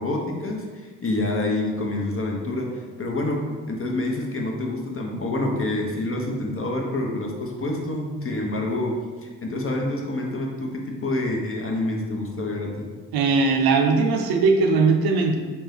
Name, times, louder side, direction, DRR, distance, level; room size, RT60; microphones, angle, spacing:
voice 1, 0.0-9.0 9.2-12.9, left 2 dB, 35° left, 0 dB, 0.9 m, -27 dB
voice 2, 13.1-15.4, right 4 dB, 65° right, 2 dB, 0.6 m, -19 dB
3.4 x 2.8 x 3.4 m, 1.5 s
hypercardioid pair, 45°, 39 cm